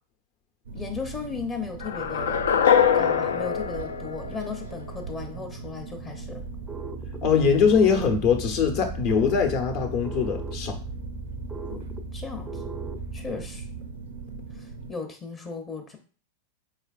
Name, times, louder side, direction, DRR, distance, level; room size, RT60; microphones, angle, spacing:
voice 1, 0.7-2.4 2.9-6.4 11.7-11.8 12.1-12.8 13.1-13.7 14.5-16.0, left 5 dB, 25° left, 3 dB, 0.7 m, -36 dB
sound 1, 0.7-14.9, right 5 dB, 90° right, 0.5 m, -40 dB
sound 2, 1.8-4.9, left 8 dB, 85° left, 0.3 m, -23 dB
sound 3, 6.4-13.2, right 2 dB, 10° right, 0.4 m, -37 dB
voice 2, 7.2-10.8 13.3-13.4, left 6 dB, 55° left, 5 dB, 0.9 m, -22 dB
4.6 x 3.2 x 2.4 m, 0.40 s
hypercardioid pair, 110°, 0 cm